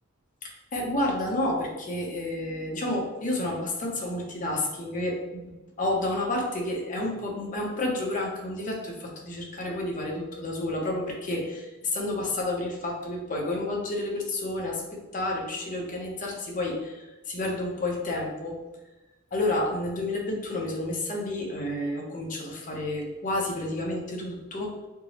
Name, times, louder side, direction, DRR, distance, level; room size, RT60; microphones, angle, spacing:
voice 1, 0.4-18.6 19.3-24.7, left 1 dB, 40° left, -1 dB, 0.6 m, -30 dB
4.4 x 2.0 x 2.8 m, 1.1 s
head